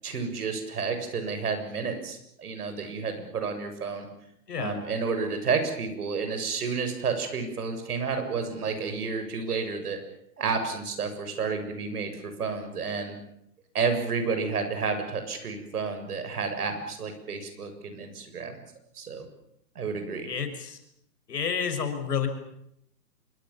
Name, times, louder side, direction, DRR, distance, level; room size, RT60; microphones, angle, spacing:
voice 1, 0.0-4.1 4.6-10.0 10.4-13.1 13.7-18.6 19.0-19.3 19.8-20.3, right 5 dB, 60° right, 7 dB, 7.4 m, -30 dB
voice 2, 4.5-4.8 20.2-20.8 21.3-22.3, left 7 dB, 65° left, 7 dB, 6.1 m, -30 dB
27.0 x 23.5 x 7.3 m, 0.78 s
hypercardioid pair, 155°, 50 cm